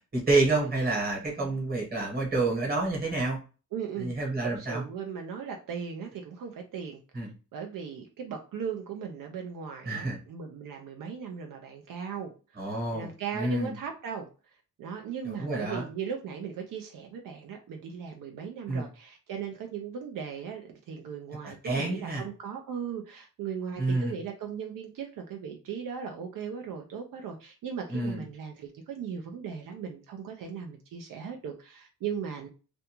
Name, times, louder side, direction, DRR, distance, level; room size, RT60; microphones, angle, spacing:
voice 1, 0.0-3.4 4.0-4.8 7.1-7.3 9.8-10.2 12.6-13.7 15.2-15.9 18.7-18.8 21.4-22.2 23.8-24.1 27.9-28.2, right 2 dB, 30° right, -2 dB, 1.2 m, -28 dB
voice 2, 3.7-4.1 4.4-7.0 7.5-12.3 12.6-14.3 14.8-32.5, right 7 dB, 80° right, 3 dB, 0.5 m, -38 dB
2.5 x 2.3 x 2.8 m, 0.34 s
wide cardioid pair, 150°, 33 cm